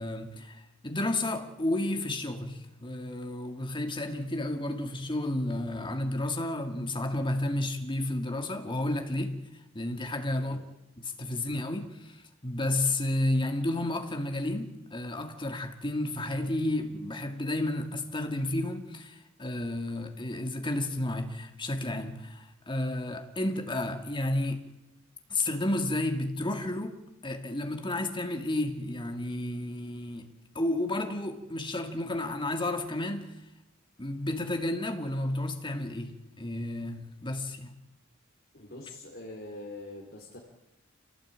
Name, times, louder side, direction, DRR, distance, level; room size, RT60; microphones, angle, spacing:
voice 1, 0.0-9.4 9.7-10.6 11.0-12.2 12.4-24.7 25.3-33.3 34.0-37.7, left 1 dB, 25° left, 2.3 m, -32 dB
voice 2, 38.5-40.4, left 2 dB, 50° left, 4.0 m, -44 dB
27.0 x 17.5 x 8.8 m
head